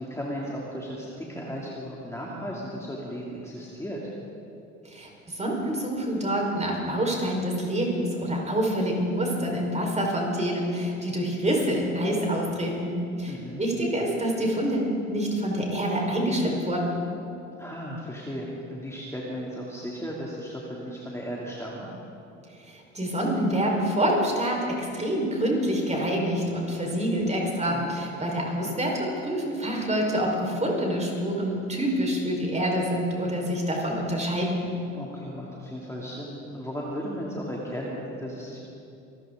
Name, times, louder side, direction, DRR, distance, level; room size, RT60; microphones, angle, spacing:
voice 1, 0.0-4.0 13.3-13.6 17.6-21.9 27.7-28.0 34.9-38.6, equal, 5° left, -4 dB, 2.9 m, -35 dB
voice 2, 4.8-14.8 15.1-16.9 22.6-34.6, equal, 20° right, -1 dB, 4.7 m, -27 dB
25.5 x 14.0 x 3.9 m, 2.7 s
hypercardioid pair, 60°, 37 cm